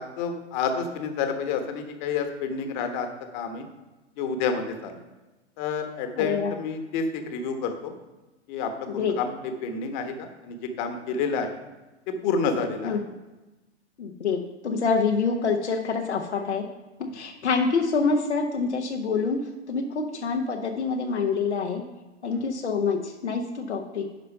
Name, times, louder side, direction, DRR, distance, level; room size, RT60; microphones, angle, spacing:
voice 1, 0.0-3.1 3.3-3.6 4.2-5.0 5.6-7.9 8.5-9.3 9.6-11.5 12.2-13.0 17.0-17.2 22.3-22.4, left 5 dB, 40° left, 6 dB, 1.2 m, -29 dB
voice 2, 6.2-6.5 8.9-9.1 12.8-13.0 14.0-16.7 17.1-19.4 19.7-21.8 22.2-24.0, left 5 dB, 75° left, 2 dB, 1.0 m, -26 dB
10.5 x 4.2 x 5.5 m, 1.1 s
figure-of-eight pair, 100°, 34 cm